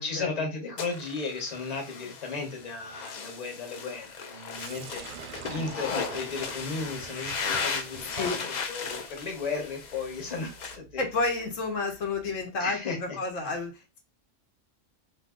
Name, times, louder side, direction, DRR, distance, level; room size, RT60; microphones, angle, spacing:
voice 1, 0.0-11.0 12.6-13.2, left 4 dB, 35° left, 1.1 m, -35 dB
sound 1, 0.8-10.8, left 5 dB, 65° left, 0.4 m, -36 dB
Sink (filling or washing), 4.5-12.4, right 7 dB, 60° right, 0.5 m, -47 dB
voice 2, 11.0-14.0, left 3 dB, 80° left, 1.2 m, -31 dB
2.7 x 2.6 x 3.7 m
omnidirectional pair, 1.3 m